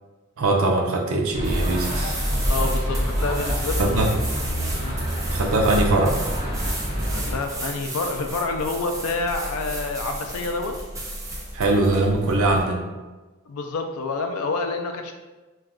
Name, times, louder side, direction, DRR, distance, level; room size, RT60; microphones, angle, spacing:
voice 1, 0.4-2.2 3.8-4.1 5.3-6.2 11.5-12.9, right 2 dB, 75° right, 2 dB, 0.5 m, -21 dB
sound 1, 1.3-7.4, equal, 45° left, 0.8 m, -26 dB
sound 2, 1.4-12.6, right 1 dB, 15° right, 0.3 m, -34 dB
voice 2, 2.5-4.2 4.8-5.0 7.1-10.8 13.5-15.1, left 3 dB, 85° left, 5 dB, 0.4 m, -28 dB
2.3 x 2.3 x 3.5 m, 1.2 s
head